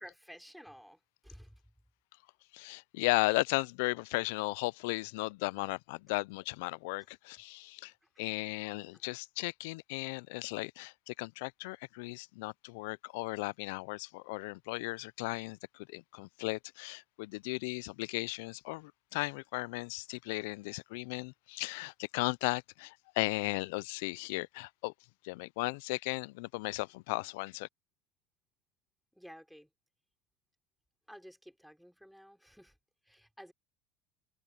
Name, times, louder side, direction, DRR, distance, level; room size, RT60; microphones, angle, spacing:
voice 1, 0.0-1.5 8.2-8.3 26.7-26.8 29.2-29.7 31.1-32.7 33.0-33.5, equal, ahead, 4.1 m, -53 dB
voice 2, 2.5-7.9 8.2-15.6 15.9-24.9 25.2-27.7, left 25 dB, 80° left, 0.3 m, -36 dB
supercardioid pair, 115°, 0 cm